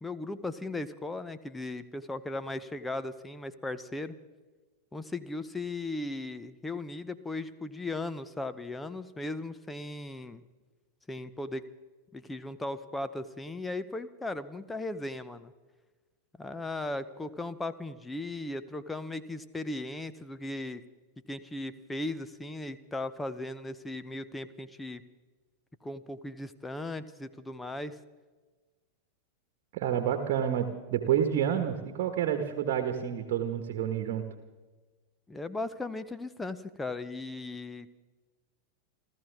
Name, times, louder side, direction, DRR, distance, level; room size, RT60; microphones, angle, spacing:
voice 1, 0.0-4.2 4.9-10.4 11.1-11.7 12.1-15.5 16.4-20.8 21.3-25.0 25.8-28.0 35.3-38.0, left 2 dB, 10° left, 12 dB, 0.8 m, -37 dB
voice 2, 29.7-34.3, right 9 dB, 45° right, 7 dB, 1.5 m, -29 dB
29.5 x 14.0 x 3.6 m, 1.3 s
figure-of-eight pair, 90°, 0 cm